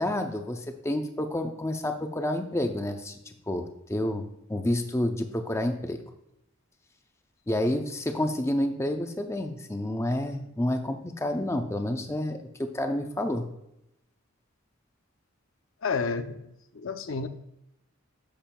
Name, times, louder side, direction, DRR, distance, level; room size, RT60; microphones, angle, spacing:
voice 1, 0.0-3.2 3.5-4.2 4.5-6.0 7.5-13.4, left 1 dB, 15° left, 5 dB, 0.5 m, -29 dB
voice 2, 15.8-17.3, left 4 dB, 65° left, 8 dB, 0.6 m, -31 dB
10.0 x 7.1 x 2.3 m, 0.82 s
head